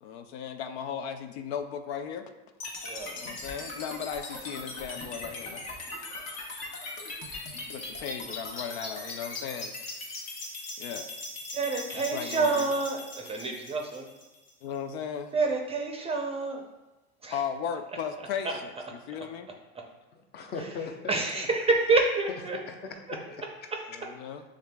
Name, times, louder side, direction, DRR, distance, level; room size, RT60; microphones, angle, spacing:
voice 1, 0.0-2.3 3.2-5.7 7.7-9.7 10.8-11.1 11.9-12.7 14.6-15.3 17.3-19.5 23.9-24.4, left 7 dB, 85° left, 0.5 m, -36 dB
sound 1, 2.6-14.6, left 2 dB, 55° left, 1.2 m, -39 dB
voice 2, 11.5-14.1 15.3-16.7 17.2-17.4 18.4-18.6 21.1-22.6, right 3 dB, 20° right, 0.5 m, -28 dB
voice 3, 20.1-21.5 22.5-23.8, left 4 dB, 30° left, 0.7 m, -40 dB
6.3 x 3.6 x 2.2 m
supercardioid pair, 120°, 31 cm